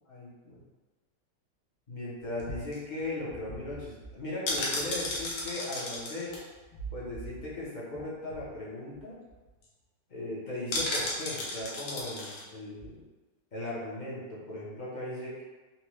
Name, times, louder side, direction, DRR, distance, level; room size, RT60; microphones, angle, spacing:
voice 1, 0.1-0.6 1.9-6.3 6.9-9.1 10.1-13.0 13.5-15.4, left 1 dB, 45° left, -7 dB, 0.6 m, -38 dB
sound 1, 2.4-7.6 7.9-8.0 8.3-8.6 8.9-9.0 9.3-9.7 10.7-12.4 12.8-12.9, left 1 dB, 80° left, 1.4 m, -35 dB
4.1 x 2.2 x 3.0 m, 1.2 s
omnidirectional pair, 1.9 m